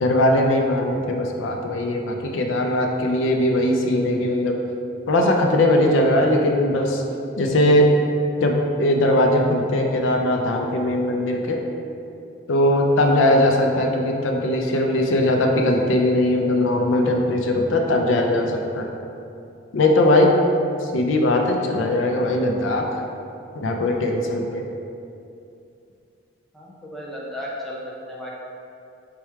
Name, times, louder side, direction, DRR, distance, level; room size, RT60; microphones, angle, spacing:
voice 1, 0.0-4.6 5.1-7.0 7.4-8.0 8.4-11.6 12.5-18.9 19.7-20.3 20.9-23.0 23.6-24.7, left 1 dB, 75° left, 2 dB, 0.4 m, -20 dB
voice 2, 26.5-28.4, equal, ahead, -6 dB, 0.5 m, -34 dB
4.5 x 2.3 x 4.5 m, 2.6 s
head